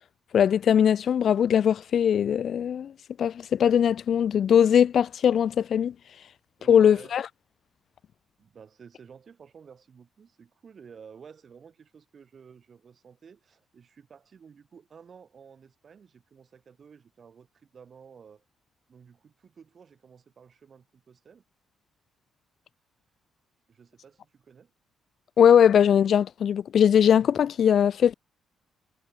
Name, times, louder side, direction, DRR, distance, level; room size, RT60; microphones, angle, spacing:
voice 1, 0.3-2.9 3.2-5.9 6.7-7.2 25.4-28.1, left 8 dB, 60° left, 0.5 m, -20 dB
voice 2, 6.6-7.2 8.4-18.5 18.9-21.4 23.7-24.7, right 6 dB, 45° right, 7.3 m, -52 dB
cardioid pair, 90°, 0 cm